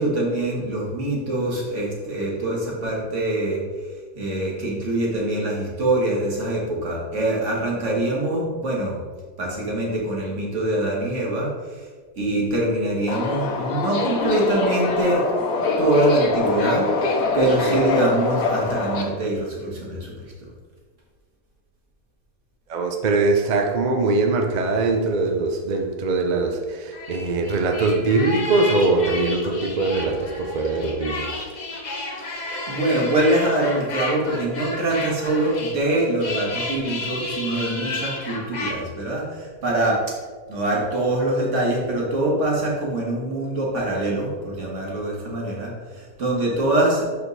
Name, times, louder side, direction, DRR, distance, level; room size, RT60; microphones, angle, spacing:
voice 1, 0.0-3.9 4.2-9.0 9.4-11.9 12.2-15.2 15.8-20.3 32.7-40.0 40.5-47.1, right 1 dB, 45° right, -3 dB, 1.9 m, -24 dB
Subway metro underground, 13.1-19.0, left 3 dB, 65° left, 1.2 m, -24 dB
voice 2, 22.7-31.3, right 3 dB, 70° right, 4 dB, 0.4 m, -22 dB
sound 1, 26.9-38.7, left 2 dB, 35° left, 0.7 m, -32 dB
6.4 x 5.3 x 4.0 m, 1.5 s
omnidirectional pair, 1.7 m